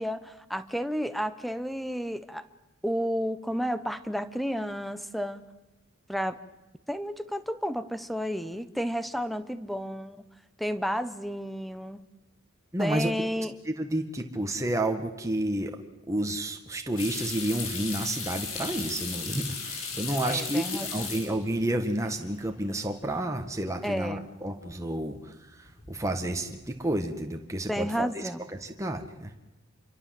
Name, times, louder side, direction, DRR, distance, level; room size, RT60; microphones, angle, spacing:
voice 1, 0.0-2.4 2.8-5.4 6.1-6.4 6.9-10.2 10.6-12.0 12.8-13.5 20.3-20.9 23.8-24.3 27.7-28.4, equal, ahead, 13 dB, 1.1 m, -31 dB
voice 2, 12.7-13.1 13.6-15.8 16.1-29.3, right 1 dB, 15° right, 4 dB, 1.8 m, -30 dB
sound 1, 17.0-21.6 21.9-22.5 22.9-23.0 25.7-26.1 26.4-26.9, left 5 dB, 90° left, 7.7 m, -36 dB
27.5 x 24.0 x 7.9 m, 1.0 s
head